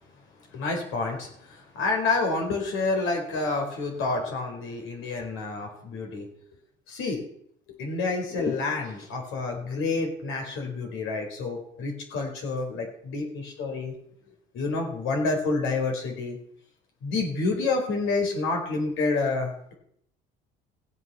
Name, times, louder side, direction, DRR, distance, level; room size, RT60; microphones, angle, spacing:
voice 1, 0.5-6.3 6.9-7.2 7.8-13.9 14.5-16.4 17.0-19.7, left 3 dB, 70° left, 3 dB, 4.7 m, -28 dB
16.5 x 8.0 x 7.0 m, 0.68 s
cardioid pair, 105°, 21 cm